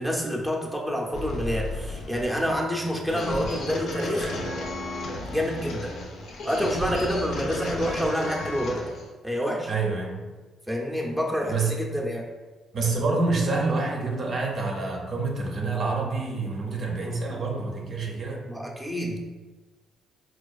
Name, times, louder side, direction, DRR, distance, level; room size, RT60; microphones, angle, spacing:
voice 1, 0.0-4.3 5.2-5.9 6.4-8.9 9.2-9.7 10.7-12.3 18.5-19.2, equal, ahead, -2 dB, 0.6 m, -28 dB
sound 1, 1.1-9.1, left 2 dB, 75° left, 0.6 m, -33 dB
voice 2, 9.7-10.3 11.5-11.8 12.7-18.5, right 3 dB, 55° right, 0 dB, 0.6 m, -27 dB
4.4 x 2.3 x 2.4 m, 1.3 s
cardioid pair, 90°, 0 cm